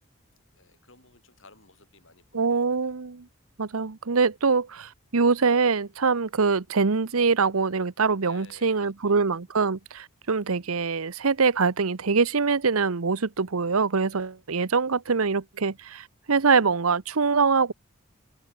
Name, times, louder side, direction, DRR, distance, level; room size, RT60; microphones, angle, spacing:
voice 1, 0.5-3.0 8.2-9.3 14.5-14.8, left 3 dB, 65° left, 7.6 m, -55 dB
voice 2, 2.3-3.3 3.6-17.7, right 4 dB, 85° right, 0.9 m, -24 dB
open air
head